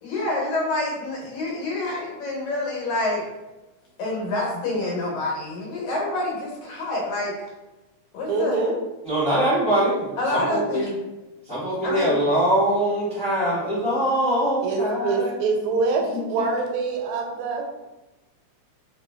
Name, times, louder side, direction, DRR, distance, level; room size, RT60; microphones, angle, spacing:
voice 1, 0.0-3.3 4.0-7.3 8.1-8.6 10.2-10.9 11.8-12.1, left 2 dB, 85° left, -3 dB, 2.3 m, -27 dB
voice 2, 8.3-8.7 14.6-17.9, right 4 dB, 80° right, 1 dB, 1.9 m, -25 dB
voice 3, 9.0-10.9 11.5-15.4 16.1-16.2, right 1 dB, 55° left, -12 dB, 0.9 m, -23 dB
4.7 x 2.2 x 2.2 m, 1.1 s
omnidirectional pair, 3.3 m